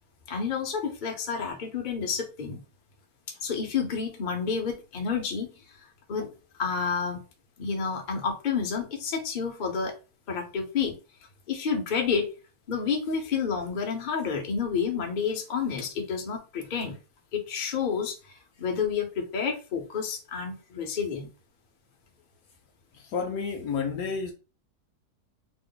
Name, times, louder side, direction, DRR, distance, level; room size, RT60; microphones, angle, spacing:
voice 1, 0.3-2.6 3.4-5.5 6.1-6.3 6.6-7.2 7.6-9.9 10.3-10.9 11.5-12.3 12.7-17.0 17.3-21.3, left 6 dB, 45° left, 0.6 m, -29 dB
voice 2, 22.9-24.3, left 5 dB, 70° left, 1.0 m, -30 dB
3.0 x 2.1 x 3.8 m
omnidirectional pair, 1.8 m